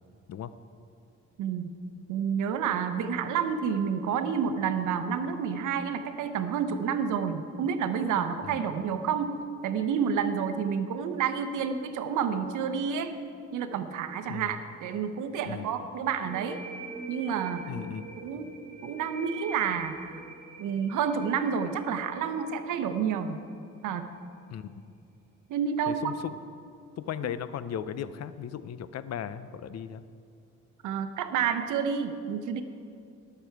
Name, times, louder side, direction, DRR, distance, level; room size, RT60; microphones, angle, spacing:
voice 1, 1.4-1.7 2.1-9.4 9.6-13.2 13.5-16.6 17.1-17.7 18.2-18.5 18.8-20.2 20.6-23.4 23.8-24.1 25.5-26.1 30.8-32.6, right 7 dB, 85° right, 8 dB, 0.9 m, -29 dB
voice 2, 14.3-14.6 15.5-15.7 17.7-18.0 24.5-24.8 25.9-26.4 27.0-30.0, left 9 dB, 60° left, 14 dB, 0.6 m, -36 dB
sound 1, 16.2-23.6, right 3 dB, 30° right, 2.6 m, -45 dB
18.5 x 7.0 x 4.6 m, 2.4 s
cardioid pair, 90°, 30 cm